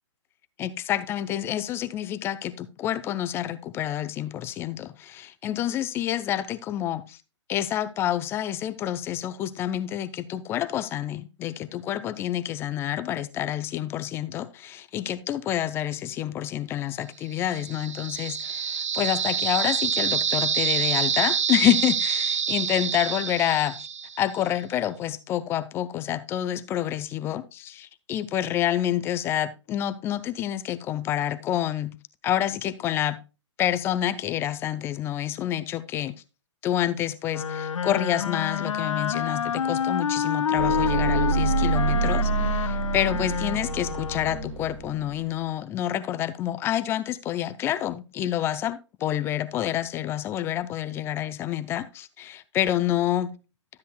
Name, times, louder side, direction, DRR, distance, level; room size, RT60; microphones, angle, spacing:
voice 1, 0.6-7.2 7.5-23.9 24.2-32.0 32.2-33.2 33.6-36.1 36.6-53.4, left 12 dB, 15° left, 0.4 m, -28 dB
sound 1, 17.4-24.4, right 7 dB, 75° right, 0.6 m, -27 dB
Wind instrument woodwind instrument, 37.3-44.6, left 7 dB, 85° left, 0.4 m, -28 dB
sound 2, 40.6-45.4, right 6 dB, 50° right, 2.0 m, -27 dB
12.5 x 8.1 x 2.2 m
figure-of-eight pair, 130°, 16 cm